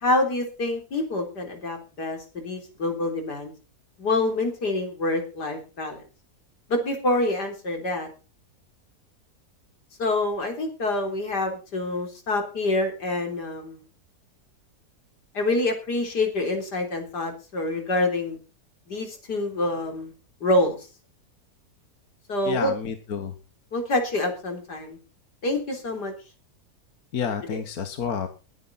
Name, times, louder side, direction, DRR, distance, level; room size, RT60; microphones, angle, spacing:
voice 1, 0.0-3.5 4.0-6.0 6.7-8.1 10.0-13.8 15.3-18.4 18.9-20.1 20.4-20.8 22.3-22.7 23.7-25.0 25.4-26.1 27.5-27.6, left 2 dB, 90° left, 4 dB, 4.3 m, -26 dB
voice 2, 22.5-23.3 27.1-28.3, left 7 dB, 65° left, 8 dB, 1.8 m, -29 dB
21.0 x 9.6 x 4.2 m, 0.33 s
omnidirectional pair, 1.7 m